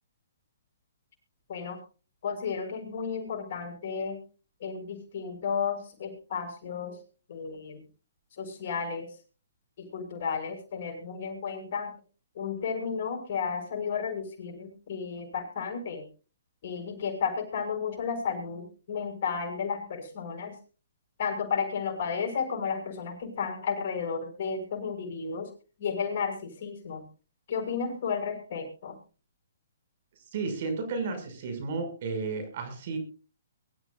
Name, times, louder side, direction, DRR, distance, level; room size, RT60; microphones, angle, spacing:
voice 1, 1.5-1.8 2.2-4.2 4.6-7.0 7.3-7.8 8.4-9.1 9.8-11.9 12.3-16.1 16.6-20.6 21.2-25.5 25.8-27.0 27.5-29.0, left 6 dB, 55° left, 5 dB, 6.5 m, -33 dB
voice 2, 30.3-33.0, right 4 dB, 55° right, 7 dB, 6.2 m, -33 dB
23.0 x 14.0 x 2.5 m, 0.35 s
hypercardioid pair, 135°, 0 cm